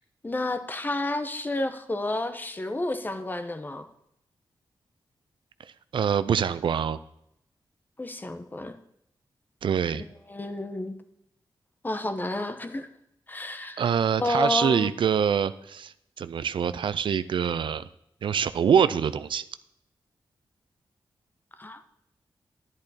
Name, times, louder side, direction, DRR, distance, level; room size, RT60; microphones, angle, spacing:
voice 1, 0.2-3.9 8.0-8.7 10.3-10.9 11.8-12.9 13.3-13.8 14.2-14.9 21.6-21.8, left 2 dB, 25° left, 9 dB, 0.9 m, -30 dB
voice 2, 5.9-7.0 9.6-10.0 13.8-17.9 18.2-19.4, right 7 dB, 80° right, 14 dB, 0.5 m, -25 dB
11.0 x 10.5 x 4.2 m, 0.76 s
wide cardioid pair, 105°, 8 cm